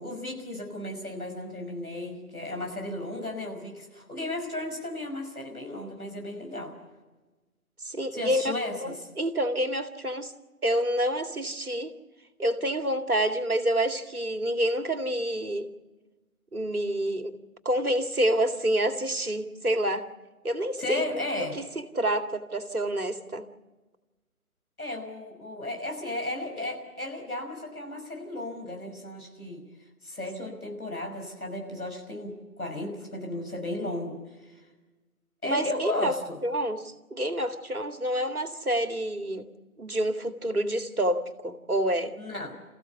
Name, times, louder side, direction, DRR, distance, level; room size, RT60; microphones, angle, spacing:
voice 1, 0.0-6.8 8.1-8.9 20.8-21.6 24.8-29.6 30.0-34.6 35.4-36.4 42.2-42.5, left 1 dB, 80° left, 3 dB, 5.9 m, -35 dB
voice 2, 7.8-8.5 8.8-10.3 10.6-11.9 12.4-15.7 16.5-17.3 17.6-20.1 20.4-21.0 21.4-23.4 35.4-36.2 36.4-39.5 39.8-42.2, right 1 dB, 80° right, 7 dB, 2.3 m, -28 dB
28.5 x 15.5 x 7.0 m, 1.2 s
figure-of-eight pair, 145°, 43 cm